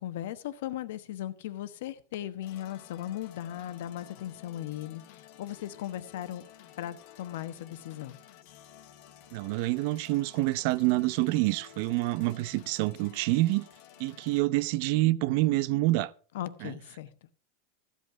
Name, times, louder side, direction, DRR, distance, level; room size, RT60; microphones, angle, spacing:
voice 1, 0.0-6.4 6.8-8.2 16.3-17.1, left 12 dB, 70° left, 1.2 m, -37 dB
sound 1, 2.4-14.4, left 11 dB, 55° left, 1.5 m, -53 dB
voice 2, 9.3-13.6 14.0-16.1 16.6-16.7, right 18 dB, 50° right, 0.6 m, -27 dB
14.5 x 8.4 x 4.8 m
supercardioid pair, 160°, 0 cm